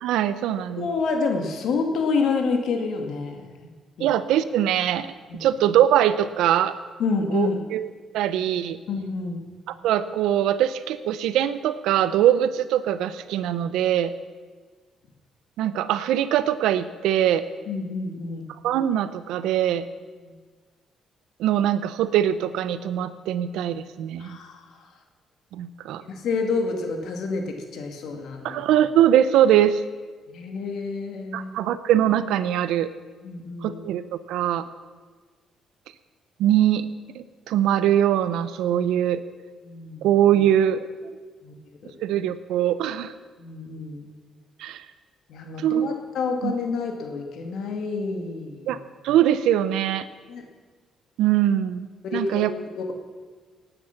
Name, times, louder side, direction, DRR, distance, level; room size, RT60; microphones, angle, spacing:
voice 1, 0.0-0.9 4.0-5.1 5.4-6.8 7.3-7.9 8.1-8.8 9.8-14.1 15.6-17.5 18.6-19.9 21.4-24.4 25.5-26.0 28.4-29.8 31.3-32.9 33.6-34.0 34.3-34.7 36.4-36.9 37.1-39.2 40.0-40.8 42.0-43.1 44.6-44.8 45.6-45.9 46.4-46.5 48.7-48.8 49.0-50.1 51.2-52.5, right 11 dB, 90° right, 13 dB, 0.7 m, -22 dB
voice 2, 0.8-3.5 5.3-5.4 7.0-7.6 8.9-9.4 17.7-18.5 20.2-20.3 24.2-24.8 26.1-28.6 30.3-31.5 33.2-33.8 39.6-40.1 41.4-41.5 41.8-41.9 43.4-44.1 45.3-48.7 50.3-50.4 52.0-52.5 52.8-52.9, left 4 dB, 75° left, 4 dB, 2.1 m, -28 dB
18.5 x 9.0 x 5.9 m, 1.4 s
cardioid pair, 90°, 0 cm